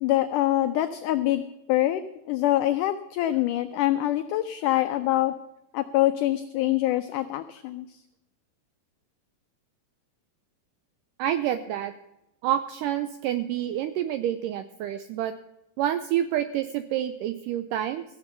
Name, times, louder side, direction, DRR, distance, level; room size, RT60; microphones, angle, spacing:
voice 1, 0.0-1.4 1.7-2.0 2.3-5.3 5.7-8.0, left 14 dB, 90° left, 10 dB, 1.8 m, -25 dB
voice 2, 11.2-11.9 12.4-15.3 15.8-18.0, right 11 dB, 85° right, 11 dB, 1.9 m, -28 dB
15.0 x 7.0 x 6.9 m, 0.89 s
omnidirectional pair, 4.3 m